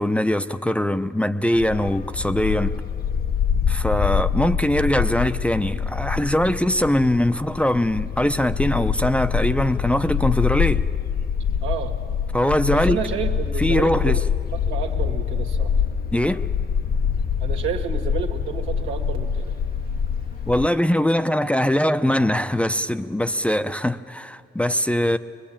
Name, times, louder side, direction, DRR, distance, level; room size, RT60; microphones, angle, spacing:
voice 1, 0.0-2.7 3.7-10.9 12.3-13.0 13.6-14.2 16.1-16.4 20.5-25.2, left 1 dB, 5° left, 0.6 m, -21 dB
Bark, 1.5-20.7, left 7 dB, 50° left, 0.7 m, -25 dB
voice 2, 11.6-11.9 12.7-14.2 14.7-15.7 17.4-19.6 23.6-23.7, right 8 dB, 90° right, 2.0 m, -30 dB
23.5 x 20.5 x 8.8 m
cardioid pair, 90°, 20 cm